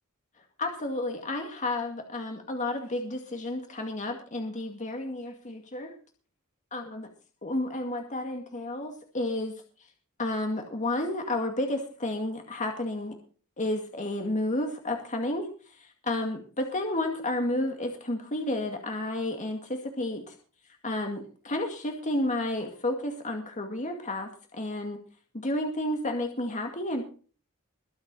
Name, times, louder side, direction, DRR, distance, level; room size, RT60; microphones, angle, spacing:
voice 1, 0.6-5.9 6.7-7.0 7.4-9.5 10.2-13.1 13.6-15.5 15.8-20.4 20.8-25.0 25.3-27.1, left 1 dB, 35° left, 3 dB, 2.2 m, -31 dB
22.5 x 7.9 x 4.2 m, 0.38 s
head